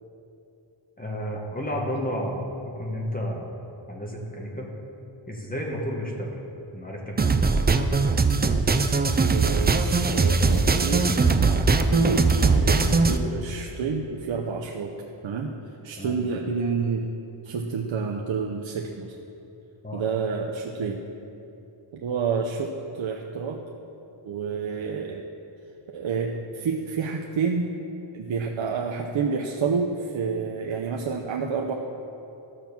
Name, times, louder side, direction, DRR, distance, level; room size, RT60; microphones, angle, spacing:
voice 1, 1.0-3.5 3.9-4.7 5.3-6.3 6.7-7.3 16.0-16.2 19.8-20.0, equal, 15° left, -1 dB, 1.6 m, -31 dB
sound 1, 7.2-13.2, right 4 dB, 20° right, 0.5 m, -20 dB
voice 2, 9.3-14.9 15.2-15.5 15.8-17.1 17.4-19.1 19.9-21.0 21.9-23.6 24.2-25.3 25.9-27.8 28.1-31.7, right 5 dB, 65° right, 0 dB, 0.9 m, -29 dB
13.0 x 6.0 x 7.1 m, 2.9 s
wide cardioid pair, 110°, 49 cm